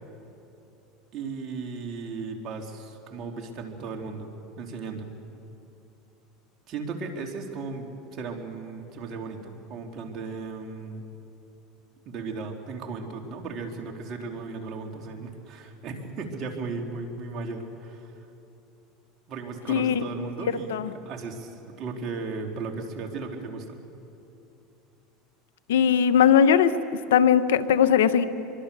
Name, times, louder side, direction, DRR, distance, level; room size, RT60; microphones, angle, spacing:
voice 1, 1.1-4.3 4.6-5.1 6.7-11.0 12.0-18.1 19.3-23.8, right 4 dB, 50° right, 2 dB, 3.2 m, -36 dB
voice 2, 19.7-20.0 20.7-20.9 25.7-26.7 27.1-28.2, left 8 dB, 90° left, 13 dB, 0.9 m, -19 dB
25.0 x 23.5 x 6.9 m, 2.8 s
supercardioid pair, 105°, 0 cm